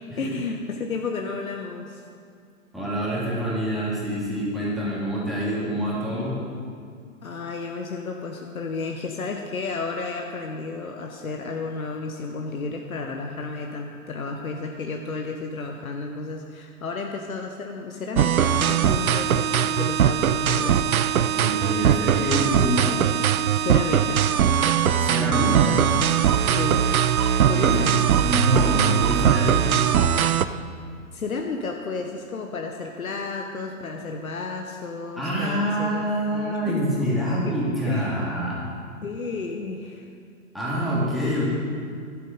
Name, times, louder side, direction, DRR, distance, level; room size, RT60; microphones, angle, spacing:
voice 1, 0.2-2.0 7.2-21.0 23.6-24.2 26.5-26.8 27.5-28.0 31.1-36.0 36.3-37.1 37.5-37.6 37.8-38.3 39.0-40.1, left 4 dB, 80° left, 3 dB, 1.0 m, -32 dB
voice 2, 2.7-6.4 21.3-23.0 25.0-25.8 27.5-27.8 28.2-29.7 35.2-38.7 40.5-41.5, equal, ahead, -8 dB, 2.8 m, -26 dB
sound 1, 18.2-30.4, right 9 dB, 80° right, 0.6 m, -20 dB
11.5 x 8.0 x 5.3 m, 2.3 s
figure-of-eight pair, 115°, 42 cm